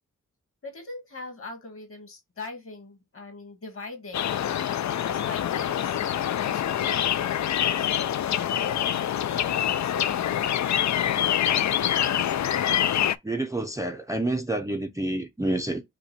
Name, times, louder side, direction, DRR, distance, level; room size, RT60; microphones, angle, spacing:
voice 1, 0.6-4.4 4.8-6.0 6.4-10.7, left 3 dB, 45° left, 1.9 m, -42 dB
sound 1, 4.1-13.2, left 10 dB, 65° left, 0.4 m, -25 dB
voice 2, 13.2-15.8, right 1 dB, 10° right, 0.5 m, -28 dB
5.6 x 2.2 x 4.1 m
wide cardioid pair, 170°, 31 cm